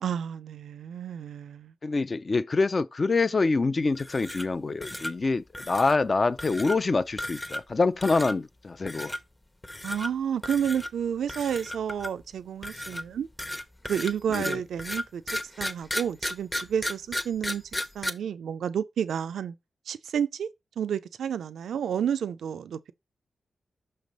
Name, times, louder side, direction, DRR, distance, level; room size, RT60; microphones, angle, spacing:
voice 1, 0.0-1.7 9.8-13.3 13.9-15.2 15.6-17.6 17.9-19.5 19.9-20.5 20.8-22.9, right 8 dB, 85° right, 0.3 m, -30 dB
voice 2, 1.8-9.2 14.3-14.6, left 3 dB, 45° left, 0.5 m, -26 dB
sound 1, 3.9-4.5 4.8-5.1 5.5-6.0 6.4-6.8 7.2-7.7 8.0-8.3 8.9-9.2 9.6-10.1 10.4-10.9 11.3-12.2 12.6-18.1, left 1 dB, 20° left, 0.8 m, -34 dB
5.8 x 3.2 x 5.2 m
cardioid pair, 60°, 0 cm